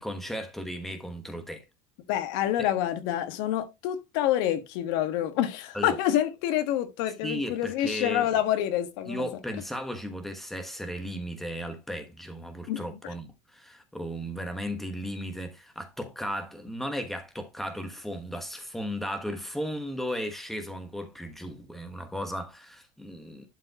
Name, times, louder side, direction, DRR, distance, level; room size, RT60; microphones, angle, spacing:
voice 1, 0.0-1.6 2.6-2.7 5.7-6.0 7.2-8.3 9.1-23.5, equal, ahead, 1.2 m, -35 dB
voice 2, 2.1-9.3 12.7-13.1, left 12 dB, 60° left, 1.5 m, -27 dB
11.5 x 4.9 x 2.9 m
cardioid pair, 180°, 14 cm